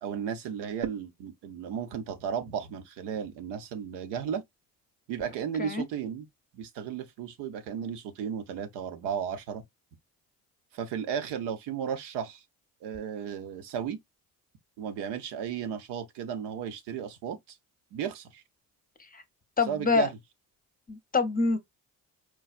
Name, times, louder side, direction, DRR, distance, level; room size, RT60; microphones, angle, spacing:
voice 1, 0.0-4.4 5.1-6.3 6.5-9.6 10.7-12.4 12.8-14.0 14.8-17.6 17.9-18.4 19.7-20.2, right 8 dB, 70° right, 0.8 m, -34 dB
voice 2, 19.6-20.1 20.9-21.6, left 4 dB, 20° left, 0.8 m, -26 dB
4.6 x 2.2 x 2.4 m
hypercardioid pair, 60°, 41 cm